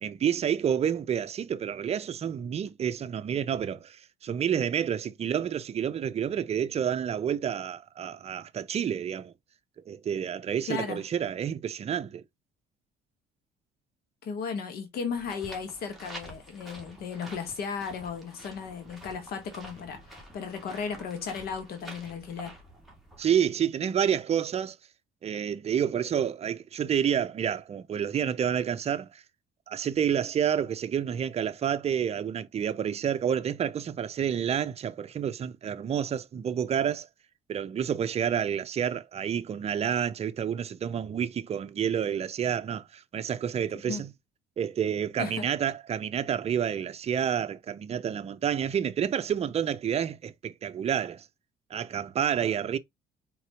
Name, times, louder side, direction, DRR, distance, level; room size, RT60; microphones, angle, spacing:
voice 1, 0.0-9.3 9.9-12.2 23.2-24.8 25.2-29.2 29.7-37.1 37.5-44.1 44.6-51.3 51.7-52.8, right 8 dB, 40° right, 0.6 m, -29 dB
voice 2, 10.7-11.0 14.2-22.5 43.9-44.0 45.2-45.5, left 6 dB, 65° left, 1.3 m, -35 dB
sound 1, 15.1-23.5, right 1 dB, ahead, 2.1 m, -48 dB
4.6 x 3.8 x 2.9 m
cardioid pair, 110°, 17 cm